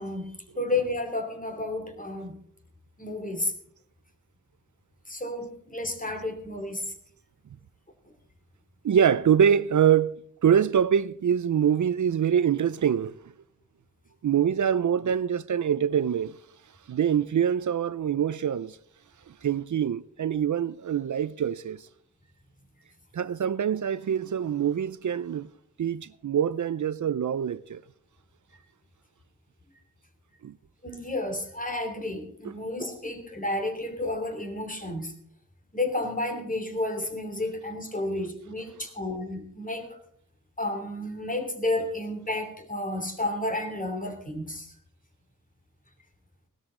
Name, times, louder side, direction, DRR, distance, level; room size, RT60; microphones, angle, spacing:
voice 1, 0.0-2.4 3.0-3.5 5.1-6.8 30.8-35.1 35.7-40.0 40.6-44.7, left 2 dB, 25° left, 2.8 m, -31 dB
voice 2, 8.8-10.2 10.4-13.2 14.2-16.4 16.9-18.8 19.4-21.8 23.1-25.5 25.8-27.8 30.4-30.5 32.4-32.5, right 8 dB, 65° right, 0.5 m, -24 dB
17.0 x 13.0 x 3.8 m
wide cardioid pair, 85°, 32 cm